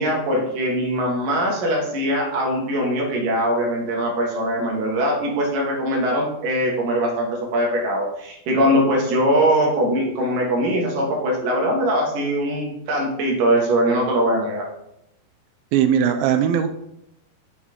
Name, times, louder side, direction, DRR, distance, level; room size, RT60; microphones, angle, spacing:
voice 1, 0.0-14.7, equal, 60° right, -1 dB, 2.8 m, -21 dB
voice 2, 15.7-16.7, right 8 dB, 90° right, 8 dB, 2.1 m, -19 dB
7.0 x 6.3 x 3.7 m, 0.80 s
omnidirectional pair, 4.9 m